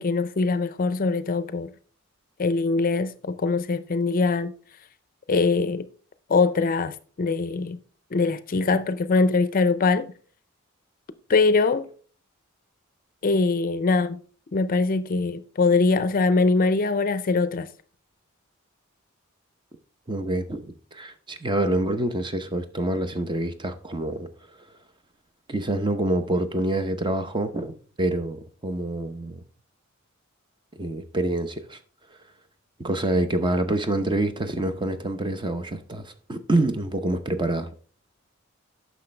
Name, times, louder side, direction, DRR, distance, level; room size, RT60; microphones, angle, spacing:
voice 1, 0.0-1.7 2.4-4.5 5.3-5.9 6.3-7.8 8.1-10.1 11.3-11.9 13.2-14.2 14.5-17.7, left 3 dB, 45° left, 0.5 m, -22 dB
voice 2, 20.1-24.7 25.5-29.4 30.8-31.8 32.1-32.2 32.8-37.7, right 1 dB, 25° right, 0.7 m, -27 dB
9.9 x 6.2 x 3.3 m
head